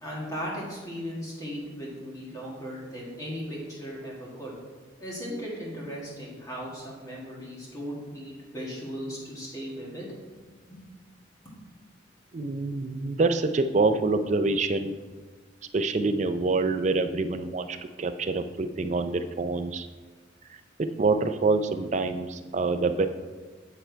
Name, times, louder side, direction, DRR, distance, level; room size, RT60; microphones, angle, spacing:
voice 1, 0.0-4.5 5.0-10.1 10.7-10.8, equal, 20° left, -5 dB, 1.7 m, -37 dB
voice 2, 12.3-14.9 15.7-19.9 20.8-23.1, right 3 dB, 35° right, 9 dB, 0.4 m, -26 dB
8.8 x 4.5 x 4.5 m, 1.4 s
head